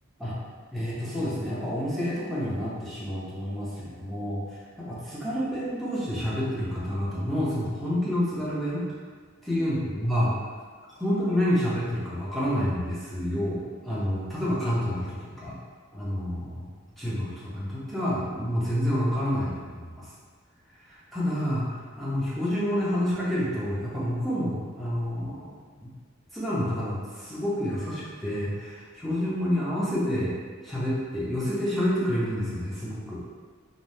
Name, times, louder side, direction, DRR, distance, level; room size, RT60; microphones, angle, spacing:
voice 1, 0.7-8.8 9.4-10.3 10.9-15.6 15.9-16.7 17.0-20.1 20.8-25.6 26.3-33.2, equal, ahead, -9 dB, 0.5 m, -29 dB
2.6 x 2.0 x 3.2 m, 1.6 s
head